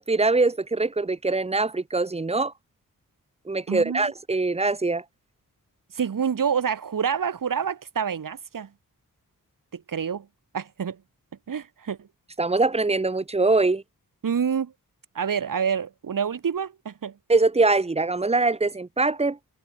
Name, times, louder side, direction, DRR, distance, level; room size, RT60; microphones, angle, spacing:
voice 1, 0.0-2.5 3.5-5.0 12.4-13.8 17.3-19.4, right 3 dB, 15° right, 0.7 m, -23 dB
voice 2, 3.7-4.1 5.9-8.7 9.7-10.3 10.5-11.0 11.5-12.1 14.2-14.7 15.1-17.1, right 7 dB, 60° right, 1.7 m, -27 dB
wide cardioid pair, 165°, 36 cm